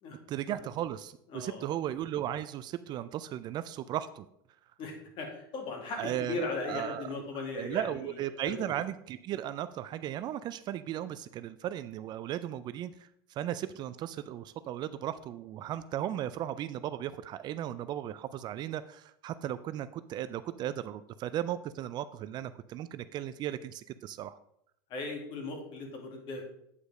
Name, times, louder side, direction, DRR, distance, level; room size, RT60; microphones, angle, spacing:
voice 1, 0.3-4.3 6.0-7.1 7.6-24.4, right 11 dB, 40° right, 14 dB, 0.4 m, -36 dB
voice 2, 1.3-1.7 4.8-7.9 8.4-8.6 24.9-26.4, left 3 dB, 45° left, 2 dB, 2.4 m, -37 dB
8.3 x 5.1 x 4.9 m, 0.74 s
supercardioid pair, 115°, 12 cm